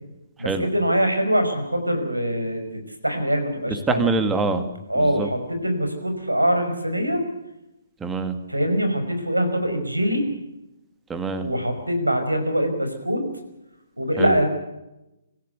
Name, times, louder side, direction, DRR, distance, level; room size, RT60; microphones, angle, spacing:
voice 1, 0.4-2.6 3.0-4.1 4.9-7.2 8.5-10.2 11.4-13.2 14.0-14.5, equal, 85° right, 7 dB, 5.5 m, -23 dB
voice 2, 3.9-4.6 5.0-5.3 8.0-8.3 11.1-11.5 14.2-14.3, right 3 dB, 10° right, 9 dB, 2.1 m, -24 dB
25.5 x 15.0 x 8.4 m, 0.92 s
figure-of-eight pair, 130°, 0 cm